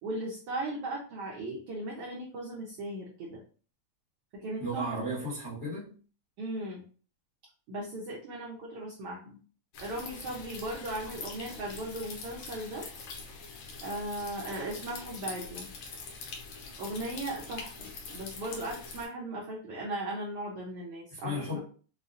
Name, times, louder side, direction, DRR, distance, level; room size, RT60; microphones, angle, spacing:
voice 1, 0.0-3.4 4.4-4.9 6.4-6.8 7.7-9.4 9.8-12.8 13.8-15.7 16.8-21.6, right 1 dB, 75° right, -4 dB, 1.4 m, -37 dB
voice 2, 4.6-5.9 21.1-21.6, equal, 45° left, -9 dB, 0.9 m, -34 dB
sound 1, 9.7-19.1, left 4 dB, 80° left, 1.2 m, -44 dB
5.4 x 2.3 x 2.5 m, 0.41 s
omnidirectional pair, 3.5 m